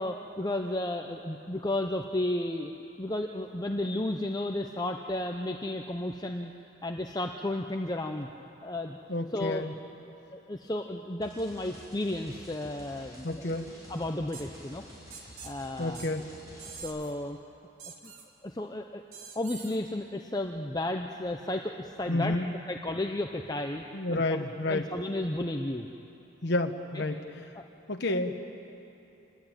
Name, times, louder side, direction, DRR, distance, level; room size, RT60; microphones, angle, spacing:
voice 1, 0.0-2.7 3.0-6.5 6.8-8.3 8.6-9.0 9.3-9.6 10.3-13.4 13.9-14.8 15.4-16.1 16.8-17.4 18.0-18.1 18.4-19.0 19.3-22.4 22.7-24.4 24.7-25.9 26.9-27.0 27.5-27.7, left 1 dB, 20° left, 4 dB, 0.7 m, -33 dB
voice 2, 9.1-9.7 13.2-13.7 15.8-16.3 22.1-22.5 23.9-24.9 26.4-27.5 27.9-28.4, left 2 dB, 55° left, 4 dB, 1.2 m, -30 dB
sound 1, 11.2-16.8, equal, 15° right, 6.0 m, -50 dB
sound 2, 14.3-14.5 15.1-15.5 15.9-16.1 16.6-17.1 17.8-18.3 19.1-19.8, right 6 dB, 85° right, 2.7 m, -45 dB
27.0 x 20.0 x 8.8 m, 2.9 s
head